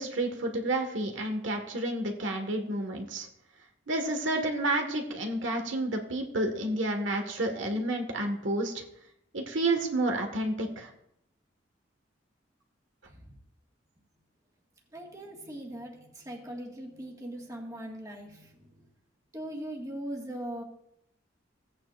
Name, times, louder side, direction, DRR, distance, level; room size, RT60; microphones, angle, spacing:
voice 1, 0.0-3.3 3.9-8.8 9.3-10.9, right 2 dB, 85° right, 3 dB, 1.6 m, -30 dB
voice 2, 14.9-18.9 19.3-20.6, right 1 dB, 20° right, -2 dB, 1.8 m, -40 dB
16.0 x 8.8 x 2.5 m, 0.76 s
head